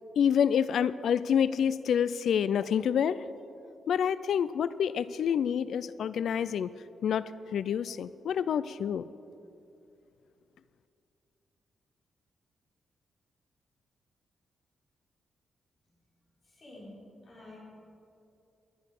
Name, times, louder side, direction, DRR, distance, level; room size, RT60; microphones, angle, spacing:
voice 1, 0.2-3.2 3.9-6.7 7.0-9.1, left 8 dB, 65° left, 16 dB, 0.3 m, -28 dB
voice 2, 16.4-16.9 17.2-17.6, left 2 dB, 35° left, -5 dB, 4.6 m, -49 dB
21.5 x 10.5 x 5.3 m, 2.7 s
wide cardioid pair, 170°, 0 cm